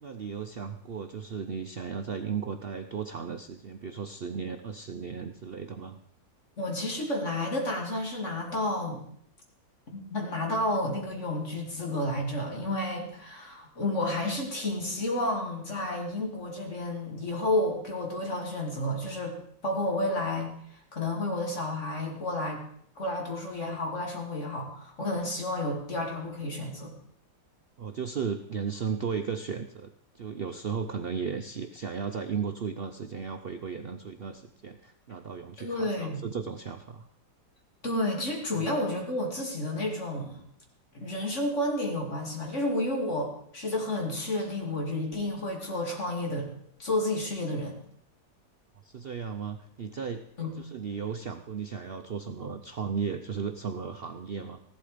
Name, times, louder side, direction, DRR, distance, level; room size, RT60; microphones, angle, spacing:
voice 1, 0.0-6.0 27.8-37.1 48.8-50.2 50.6-54.6, right 6 dB, 75° right, 7 dB, 0.5 m, -35 dB
voice 2, 6.6-9.0 9.9-19.3 19.6-22.6 23.0-26.9 35.6-36.2 37.8-40.4 40.9-46.5 46.8-47.8 50.4-50.5, left 1 dB, 40° left, 0 dB, 2.8 m, -31 dB
15.0 x 12.0 x 5.0 m, 0.65 s
omnidirectional pair, 1.9 m